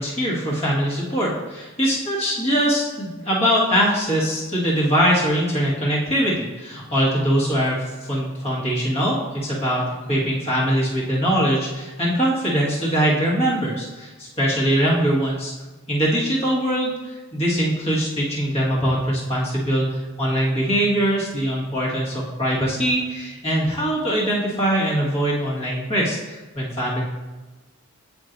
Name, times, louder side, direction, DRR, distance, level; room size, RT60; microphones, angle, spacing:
voice 1, 0.0-9.8 10.1-15.5 15.9-27.0, equal, 30° left, -6 dB, 1.7 m, -22 dB
9.4 x 4.5 x 2.6 m, 1.2 s
head